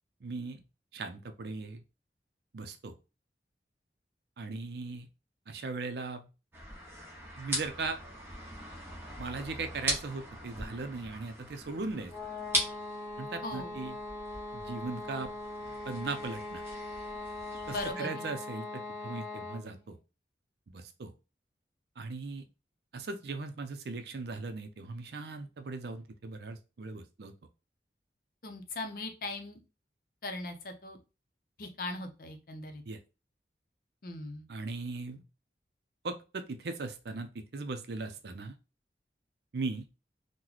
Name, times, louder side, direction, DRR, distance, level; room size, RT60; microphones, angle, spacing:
voice 1, 0.2-0.6 0.9-1.8 2.5-2.9 4.4-5.1 5.5-6.3 7.4-8.0 9.2-12.1 13.2-14.0 14.5-15.3 15.9-16.6 17.7-20.0 20.7-21.1 22.0-22.5 22.9-27.3 32.9-33.0 34.5-35.2 36.0-38.6 39.5-39.9, right 3 dB, 70° right, 7 dB, 0.5 m, -38 dB
sound 1, 6.5-17.9, equal, 15° right, 0.8 m, -40 dB
sound 2, 12.1-19.8, left 2 dB, 15° left, 1.2 m, -41 dB
voice 2, 13.4-13.7 17.7-18.3 28.4-29.6 30.2-31.0 31.6-32.8 34.0-34.4, left 2 dB, 50° left, 5 dB, 0.6 m, -39 dB
3.0 x 2.1 x 3.8 m, 0.30 s
head